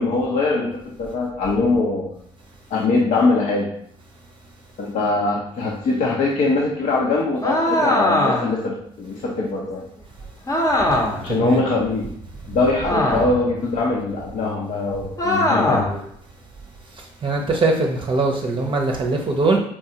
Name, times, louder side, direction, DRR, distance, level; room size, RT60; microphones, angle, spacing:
voice 1, 0.0-2.1 2.7-3.7 4.8-9.8 11.2-12.1 12.5-16.0, left 3 dB, 60° left, -3 dB, 0.7 m, -22 dB
sound 1, 7.4-8.6 10.5-11.3 12.8-13.5 15.2-16.0, left 1 dB, 20° left, 0.8 m, -20 dB
voice 2, 11.3-11.6 13.1-13.3 17.2-19.6, right 3 dB, 35° right, 1 dB, 0.7 m, -21 dB
4.4 x 2.3 x 2.8 m, 0.68 s
supercardioid pair, 65°, 15 cm